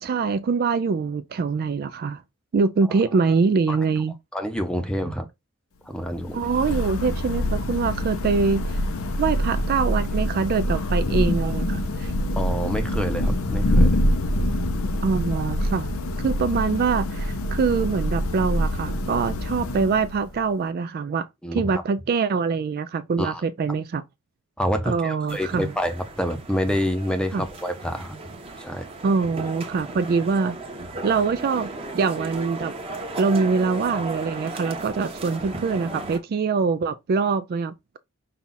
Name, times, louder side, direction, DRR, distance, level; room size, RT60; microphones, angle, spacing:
voice 1, 0.0-2.2 2.5-4.1 6.3-8.8 9.2-12.1 15.0-15.9 16.2-21.3 21.5-24.0 24.9-25.7 27.3-27.5 29.0-30.6 31.0-32.7 33.2-38.0, right 5 dB, 45° right, 0.3 m, -24 dB
voice 2, 4.3-5.3 5.9-6.4 12.3-14.0 21.4-21.8 23.2-23.4 24.6-28.2 28.6-28.8, equal, 5° left, 0.7 m, -27 dB
Thunder / Rain, 6.0-20.4, left 1 dB, 65° left, 0.6 m, -25 dB
sound 1, 25.3-36.2, right 2 dB, 25° right, 1.0 m, -35 dB
5.6 x 2.4 x 3.8 m
head